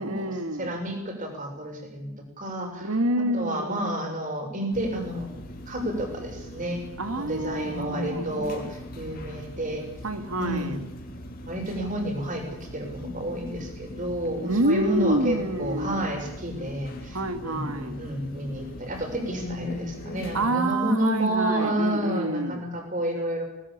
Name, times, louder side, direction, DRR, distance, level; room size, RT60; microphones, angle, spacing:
voice 1, 0.0-0.8 2.8-3.9 7.0-8.3 10.0-10.8 14.4-16.1 17.1-18.0 20.3-22.6, right 1 dB, 80° right, 9 dB, 2.3 m, -27 dB
voice 2, 0.6-2.9 3.3-5.4 5.7-6.8 7.1-9.8 10.4-10.8 11.5-23.4, right 1 dB, 35° right, 3 dB, 6.5 m, -30 dB
sound 1, 4.7-20.5, left 1 dB, 40° left, 3.5 m, -40 dB
20.0 x 19.5 x 8.7 m, 0.87 s
head